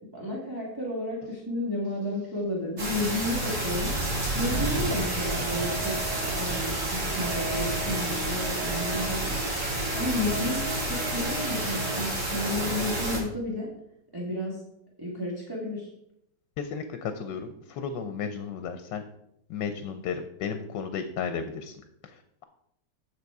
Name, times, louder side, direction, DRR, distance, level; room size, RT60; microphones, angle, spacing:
voice 1, 0.1-4.0 4.3-6.0 6.3-9.5 9.9-13.7 14.1-14.6 15.0-15.9, left 1 dB, 10° right, -5 dB, 1.9 m, -32 dB
sound 1, 2.8-13.2, right 1 dB, 85° right, 4.2 m, -30 dB
sound 2, 4.5-12.5, right 3 dB, 65° right, 4.3 m, -38 dB
voice 2, 16.6-19.0 19.5-21.8 22.0-22.4, left 6 dB, 80° left, 8 dB, 1.4 m, -34 dB
9.6 x 6.7 x 4.8 m, 0.77 s
omnidirectional pair, 1.9 m